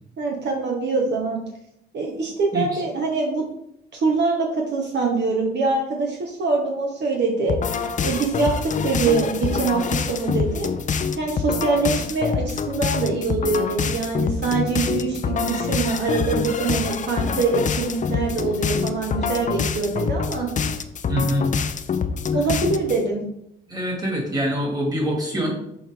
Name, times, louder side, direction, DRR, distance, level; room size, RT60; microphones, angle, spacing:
voice 1, 0.2-1.4 1.9-3.4 3.9-7.6 8.0-10.7 11.2-20.5 22.3-23.2, right 4 dB, 60° right, 0 dB, 1.2 m, -24 dB
sound 1, 7.5-23.0, left 6 dB, 40° left, 0.5 m, -26 dB
voice 2, 21.1-21.4 23.7-25.5, equal, 20° right, -1 dB, 2.3 m, -24 dB
6.3 x 4.5 x 3.5 m, 0.78 s
cardioid pair, 90°, 20 cm